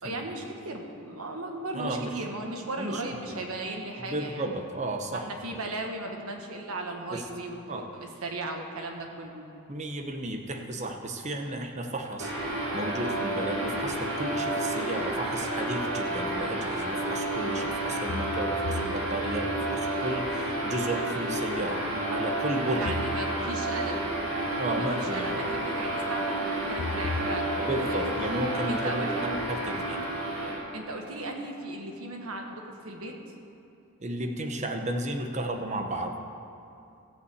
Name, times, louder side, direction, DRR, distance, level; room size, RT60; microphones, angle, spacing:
voice 1, 0.0-4.5 5.1-9.4 22.8-24.0 24.7-28.0 28.7-29.1 30.7-33.1, right 2 dB, 85° right, 2 dB, 1.4 m, -36 dB
voice 2, 1.7-2.1 2.8-3.0 4.0-5.3 7.1-7.2 7.7-7.9 9.7-12.3 12.7-23.0 24.6-25.4 27.6-30.0 34.0-36.2, right 1 dB, 35° right, 4 dB, 0.9 m, -33 dB
sound 1, 12.2-30.6, right 1 dB, 70° right, 3.5 m, -30 dB
sound 2, 18.1-19.7 22.8-23.9 26.8-28.1, left 2 dB, 65° left, 0.7 m, -37 dB
15.0 x 5.6 x 8.0 m, 2.6 s
head